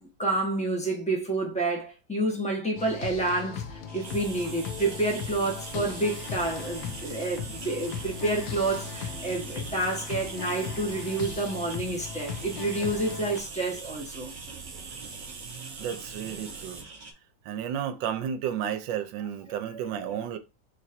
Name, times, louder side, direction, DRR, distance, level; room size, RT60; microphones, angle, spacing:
voice 1, 0.0-14.3 19.6-20.2, right 2 dB, 5° left, 0.6 m, -29 dB
sound 1, 2.8-13.4, left 6 dB, 80° left, 1.4 m, -38 dB
sound 2, 3.9-17.1, right 2 dB, 35° right, 0.7 m, -47 dB
sound 3, 4.0-16.8, right 5 dB, 60° right, 0.9 m, -42 dB
voice 2, 15.8-16.8 17.4-20.4, right 9 dB, 80° right, 1.3 m, -32 dB
4.5 x 2.5 x 4.2 m
omnidirectional pair, 2.1 m